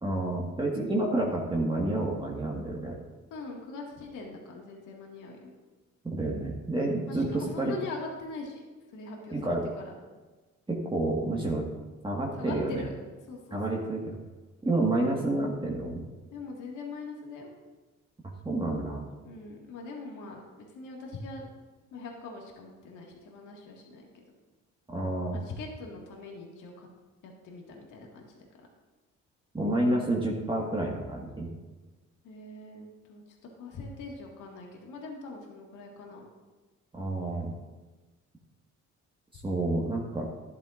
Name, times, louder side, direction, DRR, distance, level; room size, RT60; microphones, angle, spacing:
voice 1, 0.0-3.0 6.0-7.7 9.3-9.7 10.7-11.7 12.0-12.9 13.5-14.2 14.6-16.0 18.4-19.1 24.9-25.4 29.5-31.5 36.9-37.5 39.3-40.3, right 2 dB, 15° right, -2 dB, 1.7 m, -29 dB
voice 2, 3.3-5.4 7.1-8.6 8.9-9.9 12.3-12.9 13.3-13.8 14.7-14.9 16.3-17.5 19.2-20.4 20.7-21.4 21.9-24.2 25.3-26.9 27.2-28.3 32.2-33.2 33.6-36.3, left 3 dB, 85° left, -1 dB, 2.0 m, -42 dB
12.0 x 11.5 x 2.6 m, 1.2 s
cardioid pair, 90°, 30 cm